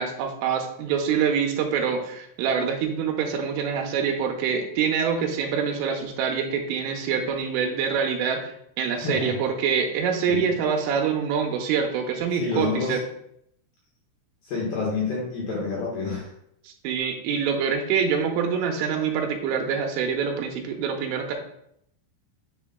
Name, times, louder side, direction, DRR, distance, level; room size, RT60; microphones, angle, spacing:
voice 1, 0.0-8.5 8.8-13.0 16.7-21.3, right 6 dB, 85° right, 3 dB, 3.3 m, -25 dB
voice 2, 9.0-9.4 10.3-10.5 12.3-13.0 14.5-16.3, left 4 dB, 65° left, -4 dB, 2.4 m, -28 dB
7.7 x 7.1 x 2.2 m, 0.73 s
omnidirectional pair, 5.7 m